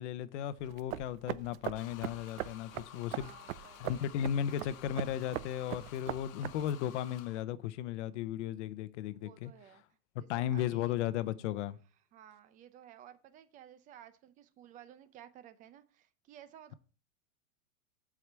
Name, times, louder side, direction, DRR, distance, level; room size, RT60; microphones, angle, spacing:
voice 1, 0.0-3.3 3.8-9.5 10.3-11.8, left 10 dB, 55° left, 0.8 m, -35 dB
sound 1, 0.6-6.8, right 14 dB, 70° right, 0.7 m, -41 dB
sound 2, 1.7-7.4, left 10 dB, 70° left, 1.2 m, -53 dB
voice 2, 2.9-4.0 9.1-9.8 10.2-11.0 11.7-11.8 12.1-16.7, right 10 dB, 20° right, 0.6 m, -55 dB
7.8 x 4.9 x 7.2 m
supercardioid pair, 155°, 42 cm